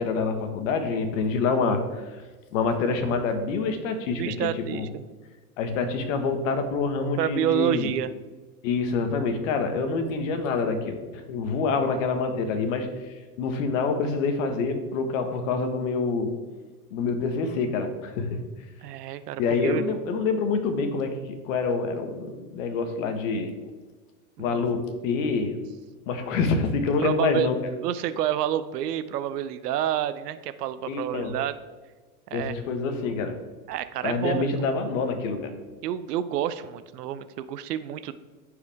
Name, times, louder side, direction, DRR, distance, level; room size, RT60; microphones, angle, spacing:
voice 1, 0.0-2.0 2.5-4.9 5.6-7.9 8.6-11.0 11.3-12.9 13.4-16.4 16.9-18.4 19.4-23.5 24.4-25.6 26.1-27.6 30.9-31.4 32.3-33.3 34.0-35.5, left 4 dB, 55° left, 7 dB, 1.4 m, -26 dB
voice 2, 4.2-5.0 7.2-8.1 18.8-19.8 24.4-24.8 27.0-27.5 27.8-31.6 32.3-32.5 33.7-34.5 35.8-38.1, right 11 dB, 80° right, 13 dB, 0.8 m, -29 dB
14.5 x 5.0 x 3.5 m, 1.3 s
supercardioid pair, 150°, 47 cm